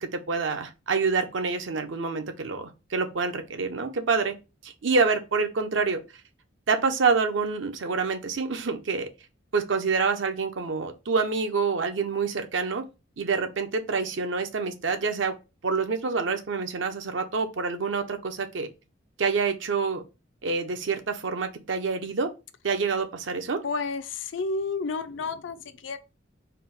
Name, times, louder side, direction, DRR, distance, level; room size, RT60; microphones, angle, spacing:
voice 1, 0.0-4.3 4.6-6.0 6.7-9.1 9.5-12.9 13.2-15.3 15.6-18.7 19.2-20.0 20.4-22.3 22.6-23.6, right 4 dB, 70° right, 0.6 m, -27 dB
voice 2, 23.6-26.0, left 4 dB, 70° left, 0.5 m, -31 dB
4.4 x 2.1 x 3.8 m
head